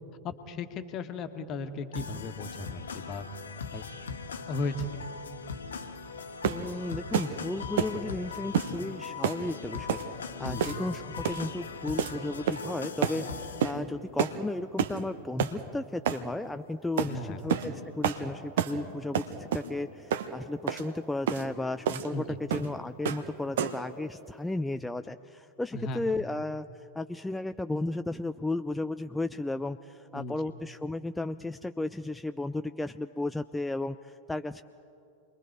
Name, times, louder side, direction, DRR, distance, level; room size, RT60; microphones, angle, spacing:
voice 1, 0.2-3.2 3.7-3.8 4.5-4.9 10.4-10.8 17.1-17.4 22.1-22.4 25.7-26.1 30.1-30.4, left 2 dB, 35° left, 8 dB, 1.5 m, -36 dB
sound 1, 1.9-13.7, left 5 dB, 70° left, 1.2 m, -40 dB
sound 2, 6.4-6.7 7.1-7.3 7.8-8.0 8.5-8.7 9.2-9.4 9.9-10.1 10.6-10.9 11.2-11.5 12.0-12.2 12.5-12.7 13.0-13.2 13.6-13.8 14.2-14.4 14.8-15.0 15.4-15.6 16.1-16.2 17.0-17.1 17.5-17.7 18.0-18.2 18.6-18.8 19.1-19.7 20.1-20.3 20.7-20.8 21.3-21.4 21.9-22.1 22.5-22.7 23.1-23.3 23.6-23.9, right 9 dB, 55° right, 1.1 m, -29 dB
voice 2, 6.5-34.6, left 2 dB, 5° left, 9 dB, 0.4 m, -34 dB
29.0 x 22.0 x 4.7 m, 2.7 s
figure-of-eight pair, 90°, 0 cm